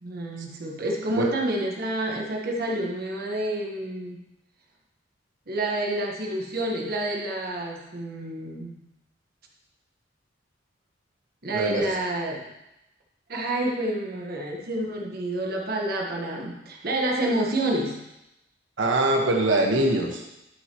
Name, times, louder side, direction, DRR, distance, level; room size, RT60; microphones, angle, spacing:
voice 1, 0.0-4.2 5.5-8.8 11.4-12.5 13.3-18.0, right 1 dB, 55° right, 0 dB, 1.4 m, -29 dB
voice 2, 11.5-11.9 18.8-20.2, right 1 dB, 80° right, 1 dB, 1.4 m, -23 dB
12.0 x 6.1 x 3.0 m, 0.91 s
head